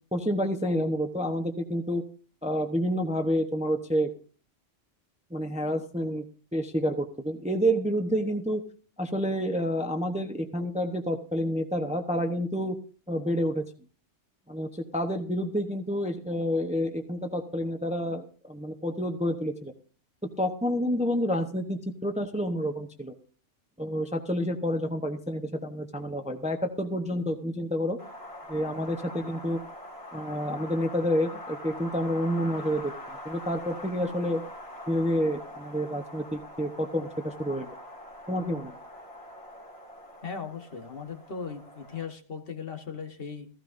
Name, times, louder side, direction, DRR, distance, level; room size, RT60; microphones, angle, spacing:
voice 1, 0.1-2.0 2.4-4.1 5.3-6.2 6.5-8.6 9.0-12.8 13.1-13.7 14.5-19.7 20.4-23.1 23.8-28.0 28.5-29.6 30.1-32.9 33.2-34.4 34.9-37.8 38.3-38.7, equal, 5° right, 6 dB, 0.8 m, -29 dB
Wind, 28.0-42.0, left 1 dB, 25° left, 2.5 m, -44 dB
voice 2, 40.2-43.5, left 6 dB, 50° left, 6 dB, 1.5 m, -38 dB
15.0 x 15.0 x 2.6 m, 0.41 s
omnidirectional pair, 1.3 m